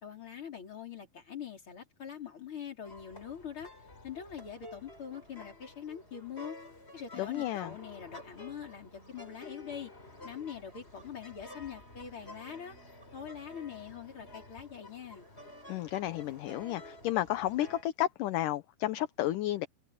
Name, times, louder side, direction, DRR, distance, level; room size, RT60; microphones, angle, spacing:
voice 1, 0.0-3.7 4.0-6.6 6.9-9.9 10.2-12.8 13.1-15.3, left 8 dB, 35° left, 4.8 m, -43 dB
sound 1, 2.8-17.8, left 1 dB, 15° left, 6.1 m, -51 dB
voice 2, 7.2-7.7 15.7-19.7, left 14 dB, 70° left, 2.3 m, -32 dB
omnidirectional pair, 4.2 m